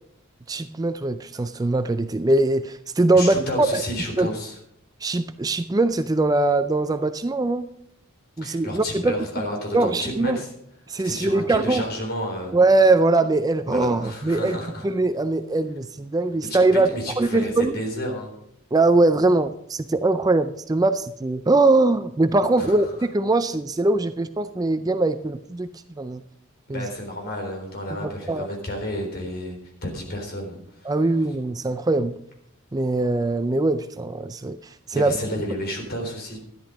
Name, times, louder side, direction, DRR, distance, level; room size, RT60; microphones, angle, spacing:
voice 1, 0.5-3.8 4.2-4.3 5.0-7.7 8.4-9.1 9.7-10.4 10.9-11.8 12.5-14.6 14.8-17.8 18.7-26.2 26.7-26.9 28.0-28.5 30.9-32.2 32.7-35.1, right 2 dB, 20° right, 11 dB, 0.4 m, -21 dB
voice 2, 3.1-4.6 8.4-10.5 11.0-12.6 13.7-14.9 16.4-18.3 22.6-22.9 26.7-30.9 34.9-36.4, equal, 50° left, 2 dB, 3.8 m, -31 dB
13.0 x 10.5 x 5.2 m, 0.72 s
head